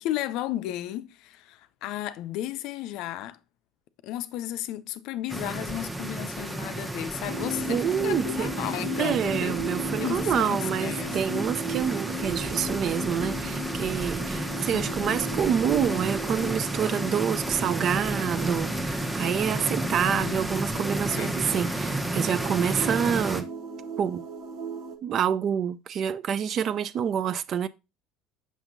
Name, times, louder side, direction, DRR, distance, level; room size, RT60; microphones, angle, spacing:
voice 1, 0.0-3.4 4.0-9.6 10.0-11.2 14.7-15.4 19.5-21.4, left 13 dB, 65° left, 0.5 m, -34 dB
sound 1, 5.3-23.4, right 1 dB, 10° right, 0.9 m, -32 dB
sound 2, 7.3-25.0, right 1 dB, 65° right, 1.1 m, -36 dB
voice 2, 7.7-8.5 9.0-23.5 24.0-24.2 25.0-27.7, right 8 dB, 50° right, 0.4 m, -27 dB
6.1 x 5.8 x 2.6 m
hypercardioid pair, 75°, 0 cm